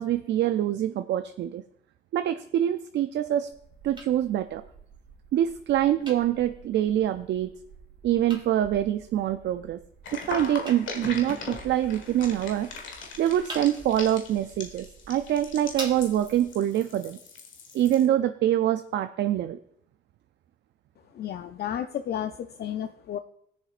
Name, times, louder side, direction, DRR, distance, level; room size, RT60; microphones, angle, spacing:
voice 1, 0.0-1.6 2.1-3.5 3.8-4.6 5.3-7.5 8.0-9.8 10.1-12.7 13.2-17.2 17.7-19.6, right 11 dB, 65° right, 10 dB, 0.4 m, -25 dB
sound 1, 3.5-16.5, right 2 dB, 25° right, 2.1 m, -46 dB
sound 2, 10.0-18.1, left 4 dB, 70° left, 1.6 m, -40 dB
voice 2, 21.1-23.2, left 10 dB, 55° left, 8 dB, 0.5 m, -32 dB
18.5 x 7.1 x 2.5 m, 0.72 s
cardioid pair, 90°, 20 cm